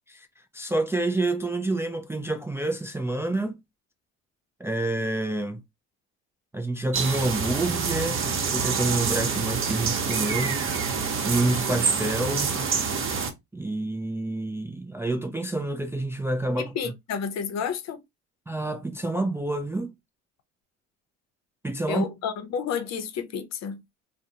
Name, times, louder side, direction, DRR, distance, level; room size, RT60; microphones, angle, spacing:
voice 1, 0.5-3.6 4.6-5.6 6.5-12.6 13.5-16.7 18.5-19.9 21.6-22.0, right 2 dB, 10° right, 0.4 m, -28 dB
sound 1, 6.9-13.3, right 5 dB, 40° right, 0.9 m, -27 dB
voice 2, 16.6-18.0 21.9-23.8, left 6 dB, 55° left, 0.7 m, -31 dB
2.3 x 2.1 x 2.8 m
hypercardioid pair, 65°, 33 cm